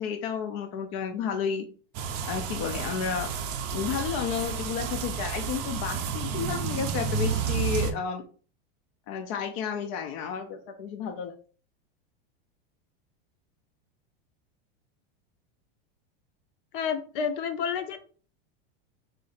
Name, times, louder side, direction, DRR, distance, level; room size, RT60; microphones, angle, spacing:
voice 1, 0.0-1.7 2.2-3.3 3.7-8.2 9.1-11.3, left 7 dB, 40° left, 5 dB, 0.4 m, -32 dB
sound 1, 1.9-7.9, right 6 dB, 35° right, 0.5 m, -31 dB
voice 2, 16.7-18.0, left 7 dB, 60° left, 7 dB, 0.8 m, -29 dB
3.9 x 2.5 x 4.0 m, 0.41 s
supercardioid pair, 160°, 30 cm